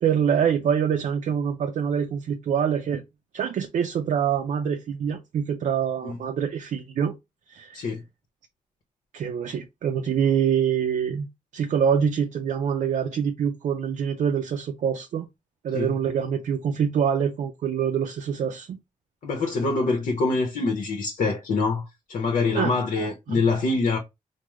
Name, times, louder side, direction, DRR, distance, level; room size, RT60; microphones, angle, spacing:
voice 1, 0.0-3.0 3.3-7.1 7.5-7.9 9.1-11.3 11.5-15.3 15.6-18.8 22.5-22.7 23.3-23.4, right 8 dB, 70° right, 0.4 m, -25 dB
voice 2, 19.2-21.8 22.1-24.0, left 3 dB, 80° left, 0.7 m, -25 dB
3.5 x 2.0 x 3.0 m
cardioid pair, 75°, 13 cm